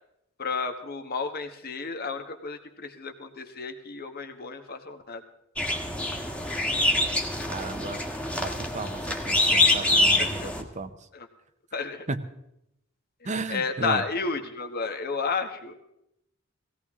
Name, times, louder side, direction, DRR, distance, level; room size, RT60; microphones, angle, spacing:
voice 1, 0.4-5.2 10.2-10.5 11.1-11.3 11.7-12.1 13.2-15.7, left 4 dB, 50° left, 6 dB, 1.4 m, -32 dB
sound 1, 5.6-10.6, left 2 dB, 5° left, 1.5 m, -25 dB
voice 2, 7.5-8.0 8.4-10.9 12.1-12.2 13.2-14.0, right 3 dB, 35° right, 10 dB, 0.8 m, -34 dB
18.0 x 16.5 x 3.7 m, 0.80 s
head